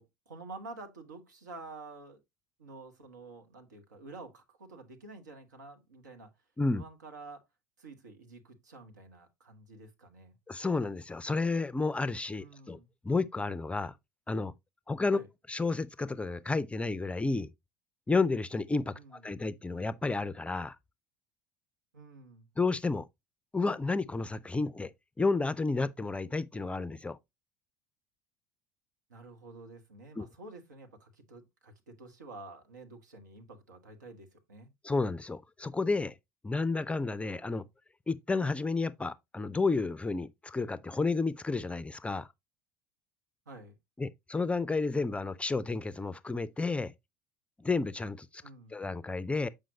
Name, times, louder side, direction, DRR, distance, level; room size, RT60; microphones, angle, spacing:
voice 1, 0.0-2.2 2.6-6.3 6.8-7.4 7.8-10.4 12.4-12.9 15.1-15.3 18.9-19.3 21.9-22.5 29.1-34.7 43.5-43.8 48.4-48.8, right 3 dB, 80° right, 1.2 m, -49 dB
voice 2, 10.5-12.8 13.0-13.9 14.3-14.5 14.9-15.2 15.5-17.5 18.1-20.8 22.6-23.1 23.5-24.9 25.2-27.2 30.2-30.3 34.8-36.1 36.4-37.6 38.1-42.3 44.0-46.9 47.6-48.4 48.7-49.5, left 3 dB, 10° left, 0.4 m, -31 dB
7.5 x 5.1 x 2.7 m
figure-of-eight pair, 65°, 10 cm